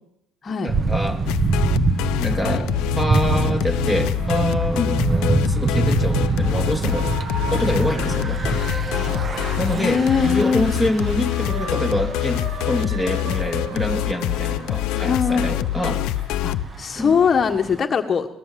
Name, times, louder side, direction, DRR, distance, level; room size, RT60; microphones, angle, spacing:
voice 1, 0.6-1.3 2.2-7.1 7.5-8.6 9.6-16.0 16.9-17.2, equal, 10° right, 6 dB, 2.9 m, -26 dB
Thunder / Bicycle, 0.7-17.8, right 4 dB, 30° right, 1.3 m, -26 dB
sound 1, 1.3-16.6, left 16 dB, 85° left, 0.7 m, -25 dB
sound 2, 5.6-10.6 11.0-15.8, right 3 dB, 60° right, 2.9 m, -36 dB
voice 2, 9.7-10.7 15.0-15.5 16.4-18.3, left 6 dB, 35° left, 4 dB, 1.5 m, -21 dB
20.5 x 19.0 x 7.7 m, 0.77 s
cardioid pair, 110°, 0 cm